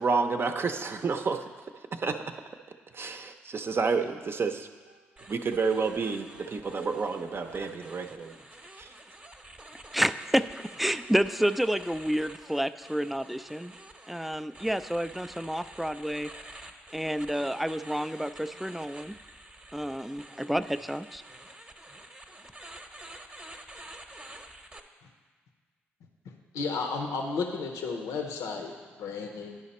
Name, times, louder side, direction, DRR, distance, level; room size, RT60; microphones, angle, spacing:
voice 1, 0.0-1.4 1.9-2.2 2.9-4.7 5.3-8.4 8.8-8.9, right 4 dB, 45° right, 6 dB, 0.6 m, -29 dB
sound 1, 4.9-8.2, right 5 dB, 85° right, 0.5 m, -52 dB
sound 2, 5.2-24.8, right 1 dB, 20° right, 0.9 m, -49 dB
voice 2, 9.9-10.4 10.8-13.7 14.1-16.3 16.9-19.1 19.7-21.2, equal, ahead, 12 dB, 0.4 m, -29 dB
voice 3, 26.2-29.6, left 4 dB, 75° left, 3 dB, 0.7 m, -33 dB
10.5 x 4.9 x 4.2 m, 1.5 s
hypercardioid pair, 40°, 6 cm